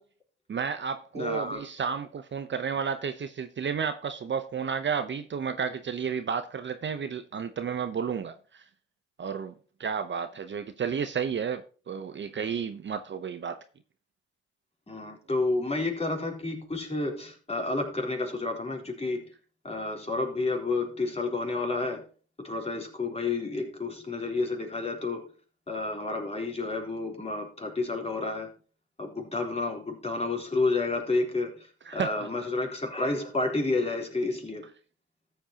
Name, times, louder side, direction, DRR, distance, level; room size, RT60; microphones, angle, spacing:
voice 1, 0.5-8.6 9.2-13.6 31.8-32.3, right 6 dB, 40° right, 0.9 m, -32 dB
voice 2, 1.1-1.6 14.9-19.3 19.6-22.1 22.4-25.3 25.7-28.5 29.0-31.7 31.9-34.7, left 3 dB, 20° left, 3.8 m, -30 dB
13.5 x 8.0 x 2.9 m
supercardioid pair, 65°, 29 cm